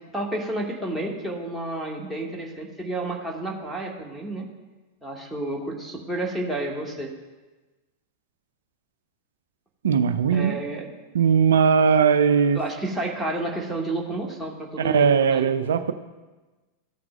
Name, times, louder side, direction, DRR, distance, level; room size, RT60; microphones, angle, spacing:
voice 1, 0.1-4.5 5.0-7.1 10.3-10.9 12.5-15.5, right 2 dB, 5° right, -2 dB, 1.5 m, -30 dB
voice 2, 9.8-10.5 11.1-12.6 14.8-15.9, right 6 dB, 65° right, 10 dB, 0.5 m, -19 dB
14.5 x 5.9 x 2.3 m, 1.2 s
figure-of-eight pair, 90°, 0 cm